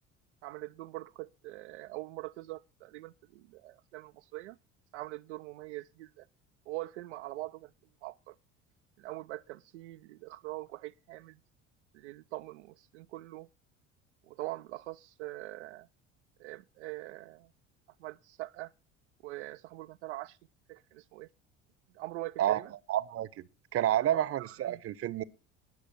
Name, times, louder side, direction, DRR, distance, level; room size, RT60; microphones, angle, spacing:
voice 1, 0.4-4.6 4.9-6.3 6.7-7.7 8.0-8.4 9.0-11.4 11.9-13.5 14.3-15.9 16.4-17.5 18.0-18.7 19.2-20.4 20.7-21.3 21.9-22.7 24.0-24.8, right 18 dB, 70° right, 0.5 m, -43 dB
voice 2, 22.9-23.3 23.7-25.2, right 12 dB, 40° right, 0.8 m, -29 dB
20.0 x 6.7 x 4.1 m
figure-of-eight pair, 60°, 37 cm